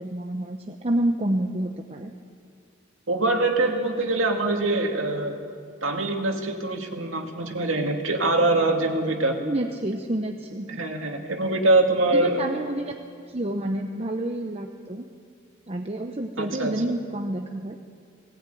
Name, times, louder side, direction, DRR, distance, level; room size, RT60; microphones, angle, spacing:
voice 1, 0.0-2.1 9.4-10.8 12.1-15.0 15.7-17.8, right 1 dB, 30° right, 4 dB, 0.9 m, -29 dB
voice 2, 3.1-5.3 5.8-9.3 10.7-12.4 16.4-16.7, right 2 dB, 85° right, 3 dB, 2.4 m, -23 dB
18.5 x 18.5 x 9.2 m, 2.2 s
head